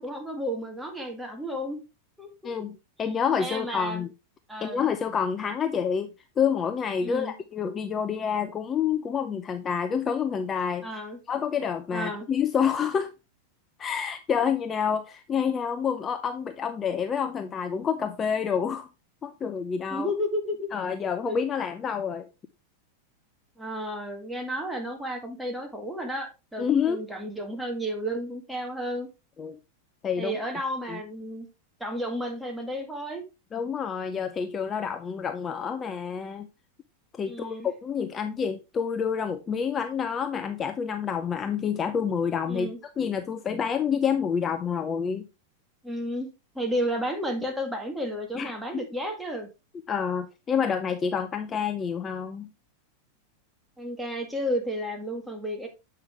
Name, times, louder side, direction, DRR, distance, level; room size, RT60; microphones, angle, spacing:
voice 1, 0.0-1.8 2.2-2.5 3.4-4.0 4.5-4.9 7.0-7.3 10.8-11.2 11.9-12.3 19.9-20.7 21.3-21.4 23.6-29.1 30.2-31.5 31.8-33.2 37.2-37.7 42.5-42.8 45.8-49.5 53.8-55.7, equal, 5° right, 1.9 m, -32 dB
voice 2, 2.4-4.1 4.6-6.1 6.4-10.8 11.3-13.1 13.8-18.9 19.2-20.1 20.7-22.3 26.6-27.0 29.4-29.6 30.0-30.4 30.9-31.0 33.5-36.5 37.1-42.7 43.0-45.3 48.3-48.5 49.9-52.5, left 7 dB, 25° left, 0.6 m, -28 dB
7.9 x 5.7 x 3.4 m
hypercardioid pair, 100°, 0 cm